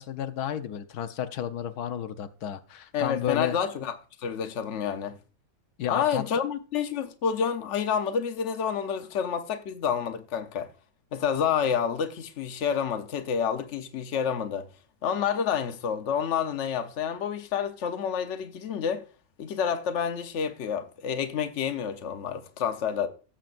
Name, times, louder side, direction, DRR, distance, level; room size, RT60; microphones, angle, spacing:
voice 1, 0.0-3.6 5.8-6.2, left 10 dB, 90° left, 1.3 m, -32 dB
voice 2, 2.9-3.9 4.2-5.1 5.9-10.7 11.1-14.6 15.0-19.0 19.4-23.1, left 7 dB, 55° left, 1.1 m, -29 dB
16.5 x 7.3 x 2.5 m
omnidirectional pair, 1.6 m